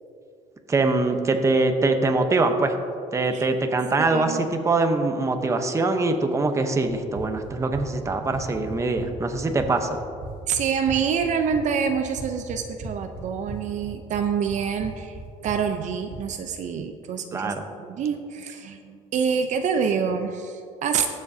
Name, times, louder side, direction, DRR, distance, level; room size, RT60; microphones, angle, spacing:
voice 1, 0.7-2.7 3.1-10.0 17.3-17.6, right 3 dB, 20° right, 6 dB, 0.9 m, -23 dB
voice 2, 4.0-4.4 10.5-21.1, right 6 dB, 60° right, 6 dB, 0.7 m, -26 dB
Run, 6.9-16.3, right 3 dB, 85° right, 2.4 m, -38 dB
20.0 x 7.5 x 2.7 m, 2.5 s
cardioid pair, 125°, 14 cm